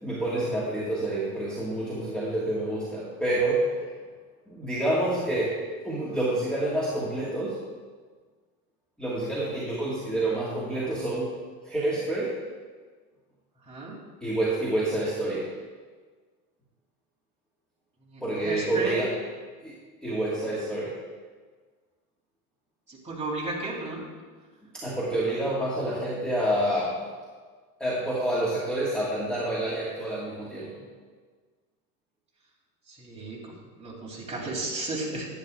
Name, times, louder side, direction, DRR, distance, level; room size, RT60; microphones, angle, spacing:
voice 1, 0.0-3.8 4.5-5.5 5.8-7.6 9.0-11.3 11.6-12.3 14.2-15.4 18.2-19.1 19.6-19.7 20.0-20.9 24.7-27.0 27.8-30.8, right 1 dB, ahead, -7 dB, 1.7 m, -28 dB
voice 2, 18.1-19.0 22.9-24.0 32.9-33.5 33.8-35.3, right 2 dB, 15° right, -4 dB, 2.9 m, -34 dB
10.5 x 10.5 x 2.5 m, 1.5 s
supercardioid pair, 105°, 45 cm